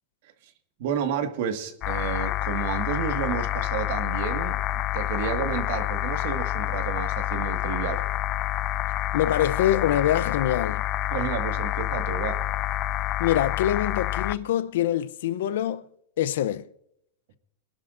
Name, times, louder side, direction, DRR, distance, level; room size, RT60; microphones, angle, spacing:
voice 1, 0.8-8.0 11.1-12.4, right 8 dB, 65° right, 1.7 m, -31 dB
sound 1, 1.8-14.4, left 15 dB, 35° left, 0.4 m, -28 dB
voice 2, 9.1-10.8 13.2-15.8 16.2-16.7, left 11 dB, 80° left, 0.6 m, -24 dB
24.5 x 11.5 x 2.6 m
supercardioid pair, 160°, 0 cm